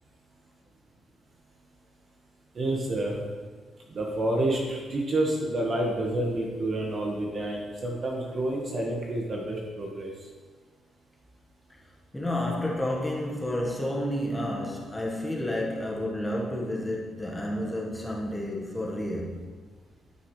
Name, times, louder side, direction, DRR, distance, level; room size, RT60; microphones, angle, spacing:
voice 1, 2.5-3.2 3.9-10.1, right 1 dB, 45° right, 1.5 m, -29 dB
voice 2, 12.1-19.4, left 1 dB, 10° left, 1.4 m, -30 dB
12.5 x 6.2 x 3.2 m
cardioid pair, 90°, 0 cm